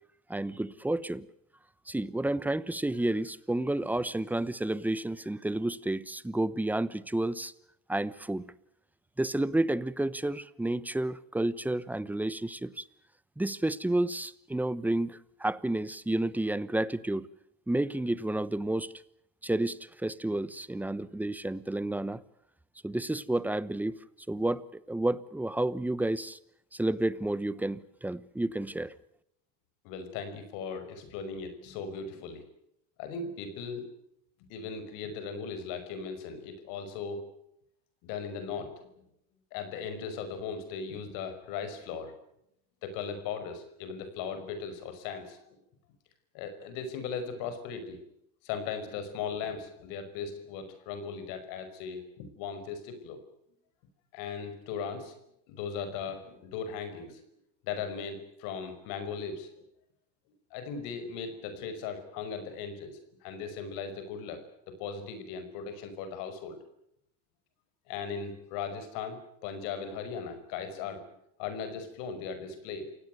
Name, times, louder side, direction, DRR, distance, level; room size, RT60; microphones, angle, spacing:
voice 1, 0.3-1.3 1.9-7.5 7.9-8.5 9.2-12.8 13.4-17.3 17.7-18.9 19.4-22.2 22.8-24.0 24.3-26.4 26.7-28.9, right 1 dB, 5° right, 0.9 m, -30 dB
voice 2, 29.8-32.4 33.0-33.9 34.5-37.3 38.0-38.9 39.5-42.1 42.8-45.6 46.3-48.0 48.4-53.2 54.1-55.1 55.5-57.2 57.6-59.5 60.5-66.6 67.9-71.0 71.4-72.9, left 6 dB, 80° left, 5.5 m, -38 dB
28.5 x 17.0 x 9.3 m
cardioid pair, 120°, 34 cm